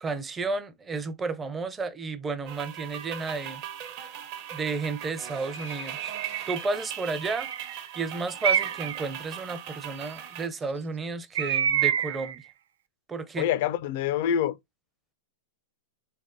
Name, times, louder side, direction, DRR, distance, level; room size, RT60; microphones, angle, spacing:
voice 1, 0.0-3.6 4.5-6.1 6.5-7.5 8.0-12.4 13.1-13.5, right 4 dB, 20° right, 0.6 m, -32 dB
sound 1, 2.5-10.5, right 9 dB, 50° right, 0.9 m, -39 dB
Bird, 6.0-6.5 7.2-7.8 8.4-9.0 11.4-12.4, right 9 dB, 70° right, 0.3 m, -27 dB
voice 2, 13.4-14.6, left 9 dB, 55° left, 0.5 m, -26 dB
3.6 x 3.4 x 2.6 m
hypercardioid pair, 110°, 0 cm